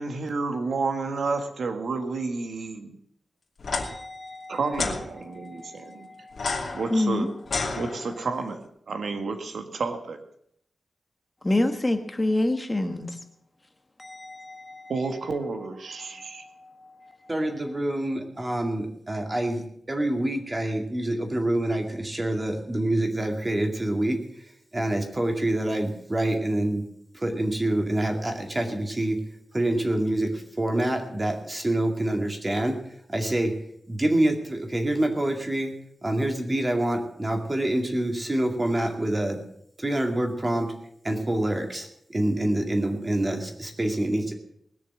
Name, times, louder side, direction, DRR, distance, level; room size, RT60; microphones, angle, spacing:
voice 1, 0.0-3.0 4.5-6.1 6.7-7.3 7.7-10.2 14.9-16.5, right 4 dB, 85° right, 6 dB, 1.7 m, -30 dB
sound 1, 3.6-3.8 4.7-5.0 6.3-8.4, left 3 dB, 55° left, 2.6 m, -30 dB
voice 2, 3.8-4.6 5.2-7.3 11.4-13.2 14.0-14.9 16.0-17.3, left 1 dB, 20° left, 6 dB, 1.2 m, -29 dB
voice 3, 17.3-26.8 27.1-29.2 29.5-33.6 33.9-35.8 36.0-39.4 39.8-40.7 41.0-44.3, right 1 dB, 20° right, 3 dB, 2.2 m, -26 dB
20.0 x 6.8 x 7.6 m, 0.69 s
wide cardioid pair, 145°, 0 cm